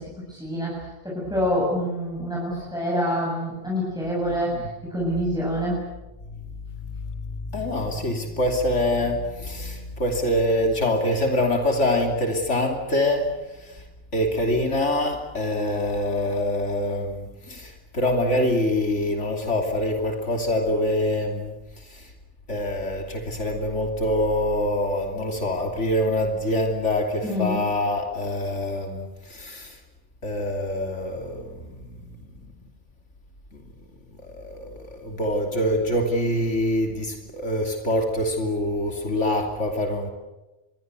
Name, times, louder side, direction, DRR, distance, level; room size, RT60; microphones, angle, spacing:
voice 1, 0.0-5.8 27.2-27.6, equal, 5° right, -5 dB, 7.4 m, -27 dB
voice 2, 4.3-4.7 6.3-6.4 6.8-13.8 14.1-22.1 22.5-29.8 30.2-32.1 33.5-33.6 34.2-40.1, left 1 dB, 85° left, 3 dB, 3.4 m, -25 dB
27.0 x 22.0 x 8.2 m, 1.0 s
omnidirectional pair, 1.2 m